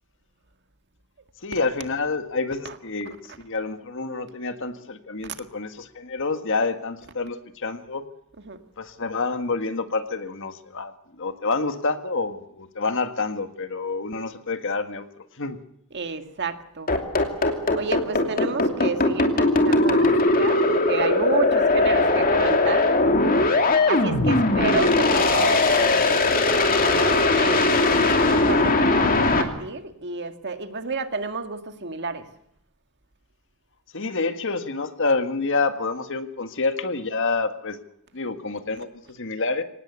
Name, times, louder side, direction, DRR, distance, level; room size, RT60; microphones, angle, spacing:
voice 1, 1.4-8.0 8.8-15.1 15.4-15.6 33.9-37.8 38.1-39.6, left 3 dB, 60° left, 9 dB, 1.7 m, -28 dB
voice 2, 15.9-16.9 17.5-22.9 23.9-27.7 28.0-32.3, right 4 dB, 50° right, 8 dB, 1.9 m, -31 dB
sound 1, 16.9-29.4, left 2 dB, 40° left, 2.7 m, -19 dB
24.5 x 18.5 x 8.2 m, 0.73 s
head